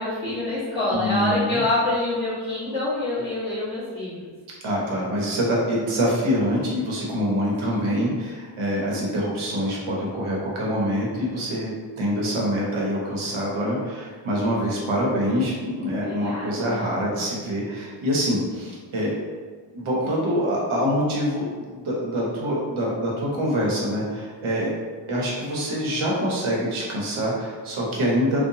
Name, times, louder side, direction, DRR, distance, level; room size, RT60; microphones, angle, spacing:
voice 1, 0.0-4.2 16.0-16.8, left 2 dB, 10° right, -15 dB, 1.1 m, -26 dB
voice 2, 0.9-1.6 4.6-19.1 19.7-24.7 25.1-28.4, equal, 80° right, -4 dB, 0.9 m, -25 dB
2.7 x 2.2 x 2.7 m, 1.5 s
wide cardioid pair, 120°, 48 cm